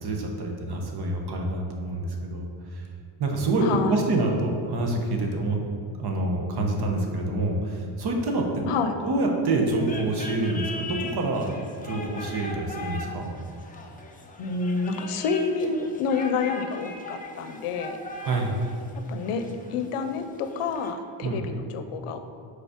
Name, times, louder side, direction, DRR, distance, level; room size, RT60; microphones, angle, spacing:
voice 1, 0.0-2.8 3.2-5.6 6.0-8.6 9.0-11.5 11.8-13.3 18.2-18.5 21.2-21.4, right 2 dB, 50° right, 1 dB, 1.0 m, -27 dB
voice 2, 3.6-4.0 8.7-9.0 14.4-18.0 19.1-19.4 19.7-22.4, left 4 dB, 85° left, 8 dB, 0.6 m, -28 dB
sound 1, 9.8-20.9, left 2 dB, 20° left, 0.5 m, -40 dB
5.3 x 4.1 x 4.9 m, 2.3 s
cardioid pair, 135°, 50 cm